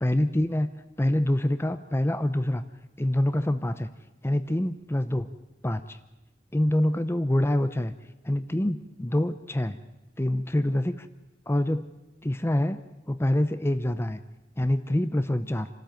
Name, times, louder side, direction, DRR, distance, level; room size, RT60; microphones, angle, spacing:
voice 1, 0.0-2.6 3.0-3.9 4.2-5.3 5.6-6.0 6.5-7.9 8.2-9.8 10.2-11.1 11.5-11.9 12.2-12.8 13.1-14.2 14.6-15.7, left 1 dB, 15° left, 11 dB, 0.6 m, -26 dB
28.0 x 13.0 x 9.1 m, 1.0 s
head